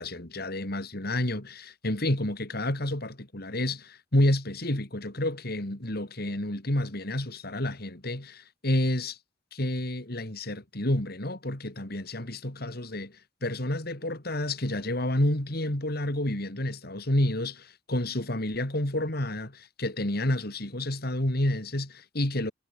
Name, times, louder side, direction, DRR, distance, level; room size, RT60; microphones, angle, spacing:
voice 1, 0.0-9.2 9.5-22.5, left 1 dB, 55° left, 3.4 m, -29 dB
head